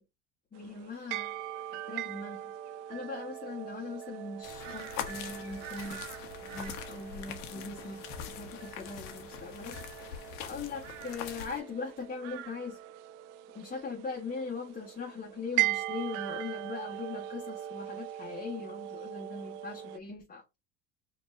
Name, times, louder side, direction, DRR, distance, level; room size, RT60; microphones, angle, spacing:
voice 1, 0.5-1.4 1.7-2.5 2.9-6.1 6.4-9.8 10.4-12.8 13.5-20.6, left 4 dB, 20° left, 1.2 m, -40 dB
sound 1, 0.5-20.0, right 14 dB, 65° right, 0.5 m, -40 dB
sound 2, 4.4-11.6, left 9 dB, 70° left, 1.1 m, -43 dB
5.2 x 2.9 x 2.5 m
hypercardioid pair, 80°, 37 cm